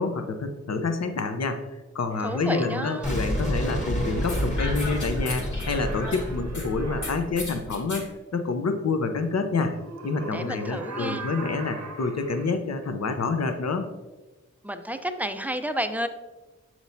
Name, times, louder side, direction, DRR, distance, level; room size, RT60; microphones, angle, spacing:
voice 1, 0.0-1.6 1.9-9.7 10.0-13.9, left 4 dB, 60° left, 6 dB, 0.8 m, -28 dB
sound 1, 2.1-4.5 5.5-7.1 9.6-12.6, right 3 dB, 65° right, 0.9 m, -40 dB
voice 2, 2.2-3.2 10.3-11.3 14.6-16.1, equal, 5° right, 8 dB, 0.5 m, -31 dB
Boom, 3.0-8.0, equal, 25° left, 1.4 m, -30 dB
sound 2, 4.3-6.7 7.0-8.1, left 2 dB, 85° left, 2.1 m, -36 dB
7.2 x 6.1 x 2.7 m, 1.1 s
wide cardioid pair, 60°, 30 cm